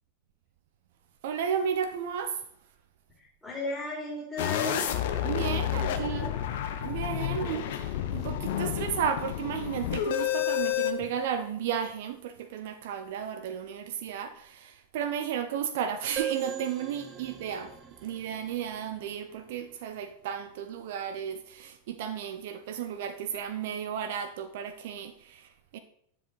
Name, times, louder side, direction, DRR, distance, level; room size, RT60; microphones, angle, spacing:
voice 1, 1.2-2.4 5.2-6.3 6.8-17.8 18.0-25.8, right 8 dB, 55° right, 0.6 m, -33 dB
voice 2, 3.2-4.9 5.7-6.3 7.4-7.6 8.2-8.3, left 2 dB, 5° left, 3.3 m, -36 dB
sound 1, 4.4-10.9, left 10 dB, 55° left, 0.9 m, -30 dB
sound 2, 16.2-19.7, right 10 dB, 25° right, 1.2 m, -39 dB
10.0 x 7.3 x 4.1 m
figure-of-eight pair, 90°, 0 cm